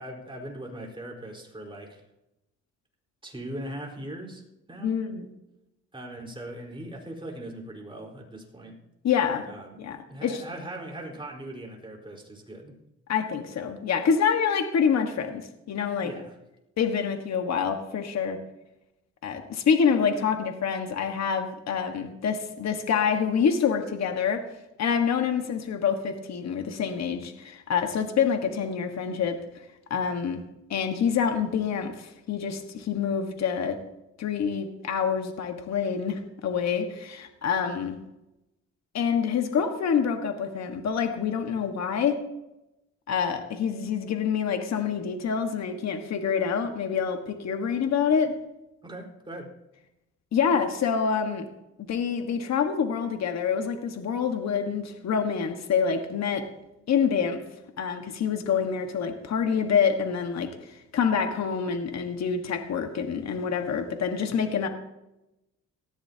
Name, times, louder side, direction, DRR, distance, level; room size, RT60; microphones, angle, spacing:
voice 1, 0.0-2.0 3.2-4.4 4.7-5.0 5.9-8.8 9.5-12.8 16.0-16.4 48.8-49.5, right 1 dB, 15° right, 0 dB, 4.5 m, -40 dB
voice 2, 4.8-5.3 9.0-9.4 9.8-10.4 13.1-16.1 16.8-18.4 19.2-24.4 24.8-29.4 29.9-30.4 30.7-33.8 34.2-38.0 38.9-42.2 43.1-48.3 50.3-51.5 51.8-56.5 56.9-57.4 57.8-64.7, left 6 dB, 60° left, 5 dB, 1.6 m, -26 dB
19.0 x 14.5 x 2.9 m, 0.92 s
cardioid pair, 90°, 30 cm